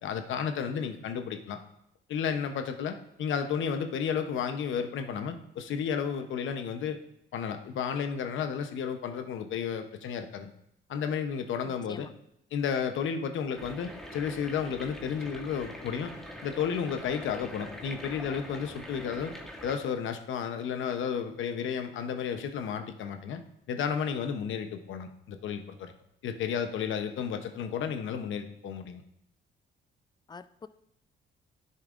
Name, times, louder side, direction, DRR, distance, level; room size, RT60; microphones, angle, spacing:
voice 1, 0.0-1.6 2.1-7.0 7.3-10.5 10.9-12.1 12.5-16.1 16.4-19.3 19.6-23.4 23.7-25.9 26.2-29.0, left 7 dB, 70° left, 7 dB, 0.8 m, -32 dB
voice 2, 11.6-12.1 30.3-30.7, left 5 dB, 20° left, 14 dB, 0.4 m, -46 dB
sound 1, 13.6-19.8, equal, ahead, 1.2 m, -43 dB
10.5 x 6.7 x 2.5 m, 0.77 s
cardioid pair, 85°, 20 cm